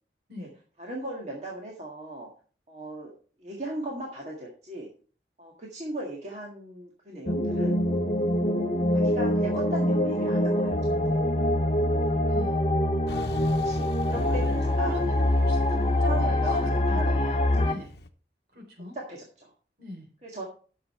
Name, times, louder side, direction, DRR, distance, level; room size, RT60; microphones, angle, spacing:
voice 1, 0.8-2.3 2.7-3.1 3.4-4.9 5.4-7.8 8.9-11.0 13.5-15.0 16.0-17.6 18.9-19.5 20.2-20.4, right 1 dB, 40° right, -2 dB, 1.8 m, -38 dB
sound 1, 7.3-17.7, left 1 dB, 30° left, 0.8 m, -24 dB
voice 2, 11.7-12.6 14.3-18.0 18.5-19.0 19.8-20.1, left 2 dB, 60° right, 2 dB, 3.8 m, -41 dB
Truck, 13.1-18.1, left 2 dB, 65° left, 0.9 m, -43 dB
10.5 x 6.7 x 4.3 m, 0.40 s
head